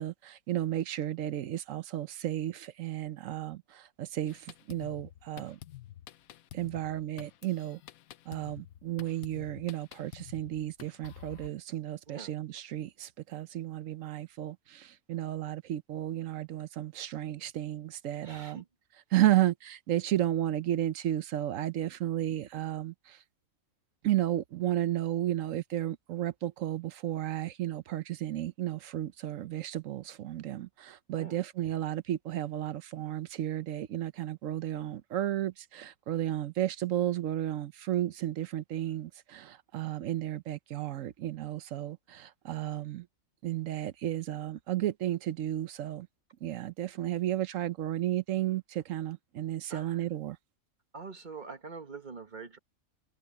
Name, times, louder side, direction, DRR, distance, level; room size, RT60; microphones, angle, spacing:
voice 1, 0.0-5.6 6.5-7.8 8.3-18.6 19.1-23.2 24.0-43.1 43.4-46.1 46.4-50.4, right 13 dB, 70° right, 1.0 m, -33 dB
Drum kit, 4.3-11.5, left 12 dB, 80° left, 1.2 m, -50 dB
voice 2, 18.2-18.7 31.1-31.4 49.7-50.0 50.9-52.6, right 4 dB, 35° right, 1.6 m, -44 dB
omnidirectional pair, 1.5 m